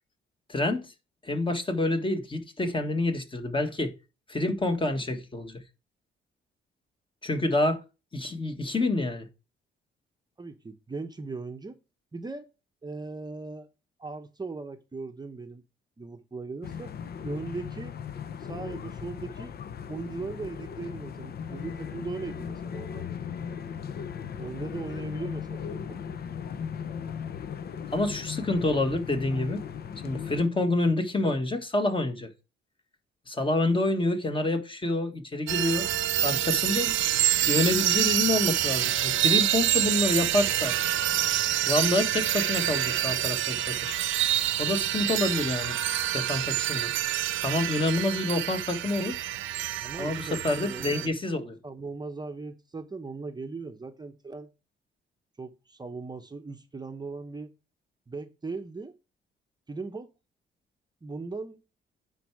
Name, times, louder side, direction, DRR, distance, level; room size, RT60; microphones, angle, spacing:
voice 1, 0.5-0.9 1.2-3.9 4.3-5.6 7.2-7.8 8.1-9.3 27.9-29.6 30.0-32.3 33.3-35.9 36.2-36.9 37.4-40.7 41.7-44.0 44.6-45.8 46.1-46.9 47.4-49.2 50.0-51.6, left 2 dB, 25° left, 1.5 m, -27 dB
voice 2, 10.4-11.8 12.1-12.5 12.8-13.7 14.0-15.6 16.0-16.9 17.2-17.9 18.4-19.5 19.9-23.2 24.4-26.0 49.8-51.2 51.6-54.5 55.4-57.5 58.1-58.9 59.7-60.1 61.0-61.6, right 3 dB, 20° right, 0.8 m, -38 dB
sound 1, 16.6-30.4, left 7 dB, 50° left, 0.7 m, -37 dB
sound 2, 35.5-51.1, right 13 dB, 75° right, 0.8 m, -27 dB
9.1 x 4.7 x 4.6 m
cardioid pair, 90°, 20 cm